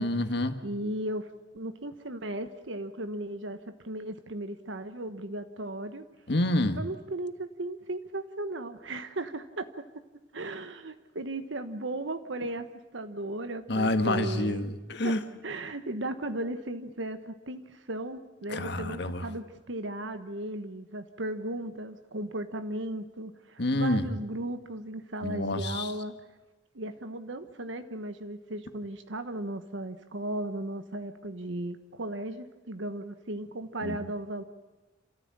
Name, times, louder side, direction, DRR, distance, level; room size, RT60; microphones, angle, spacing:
voice 1, 0.0-0.6 6.3-6.8 13.7-15.2 18.5-19.2 23.6-24.1 25.2-25.9 33.8-34.0, left 1 dB, 60° left, 8 dB, 1.5 m, -28 dB
voice 2, 0.6-3.6 3.8-6.0 6.8-9.8 10.3-12.7 12.9-14.7 15.0-15.1 15.4-26.1 26.7-34.4, right 1 dB, 80° right, 9 dB, 1.2 m, -36 dB
27.5 x 14.0 x 8.8 m, 1.1 s
head